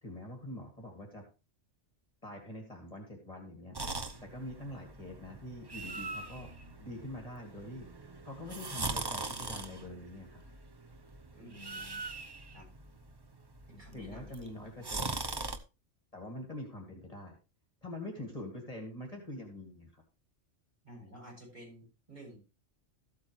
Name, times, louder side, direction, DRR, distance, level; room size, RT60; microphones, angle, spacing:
voice 1, 0.0-1.2 2.2-3.8 4.2-6.5 6.8-7.9 8.2-10.4 13.9-15.2 16.1-17.4 17.8-20.0, left 1 dB, 30° left, 2 dB, 2.2 m, -44 dB
sound 1, 3.7-15.6, right 3 dB, 25° right, 0.7 m, -41 dB
voice 2, 11.3-12.0 12.5-12.7 13.7-14.5 18.1-18.2 20.8-22.4, equal, 40° right, -3 dB, 7.6 m, -52 dB
14.0 x 8.4 x 3.1 m, 0.29 s
omnidirectional pair, 1.2 m